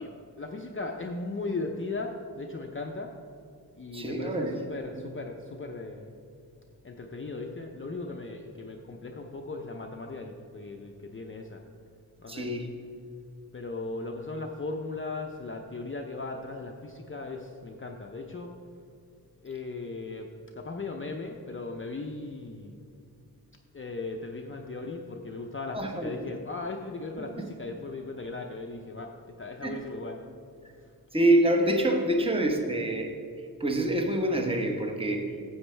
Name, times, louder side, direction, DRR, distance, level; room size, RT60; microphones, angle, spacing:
voice 1, 0.0-3.1 3.7-6.1 6.8-11.6 12.2-12.5 13.5-18.5 19.4-20.3 20.6-22.8 23.7-30.2, left 3 dB, 35° left, 2 dB, 0.6 m, -37 dB
voice 2, 3.9-4.6 4.9-5.0 12.3-12.7 25.7-26.3 27.4-27.5 29.6-29.8 31.1-33.1 33.6-35.3, right 1 dB, 15° right, 3 dB, 1.0 m, -26 dB
9.8 x 7.9 x 3.3 m, 2.5 s
wide cardioid pair, 70°, 38 cm